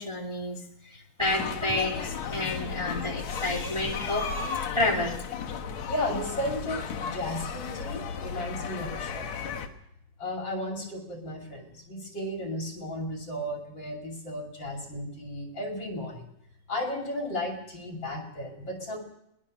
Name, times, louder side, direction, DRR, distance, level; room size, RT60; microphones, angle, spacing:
voice 1, 0.0-5.2, left 2 dB, 10° right, 1 dB, 2.3 m, -30 dB
sound 1, 1.2-9.7, left 6 dB, 65° left, 2.7 m, -34 dB
voice 2, 5.9-9.6 10.2-16.3 16.7-19.0, left 1 dB, 40° left, 4 dB, 3.0 m, -34 dB
22.0 x 19.0 x 6.4 m, 0.79 s
omnidirectional pair, 3.5 m